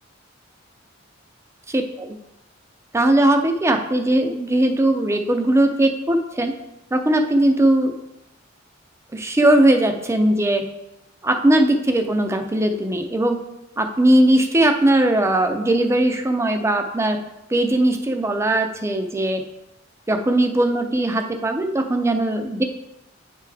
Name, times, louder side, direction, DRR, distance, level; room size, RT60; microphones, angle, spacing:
voice 1, 1.7-2.2 2.9-6.5 6.9-7.9 9.1-10.7 11.2-13.4 13.8-17.2 17.5-19.4 20.1-22.6, right 1 dB, 15° right, 5 dB, 0.5 m, -19 dB
9.0 x 3.5 x 3.3 m, 0.90 s
head